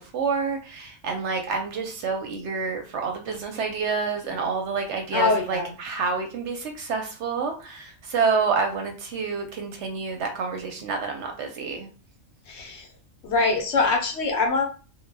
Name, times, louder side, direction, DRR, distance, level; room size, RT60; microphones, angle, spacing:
voice 1, 0.1-11.9, right 5 dB, 65° right, 4 dB, 0.8 m, -28 dB
voice 2, 5.1-5.7 12.5-12.9 13.2-14.6, left 3 dB, 65° left, 2 dB, 0.8 m, -23 dB
2.2 x 2.2 x 3.2 m, 0.35 s
omnidirectional pair, 1.4 m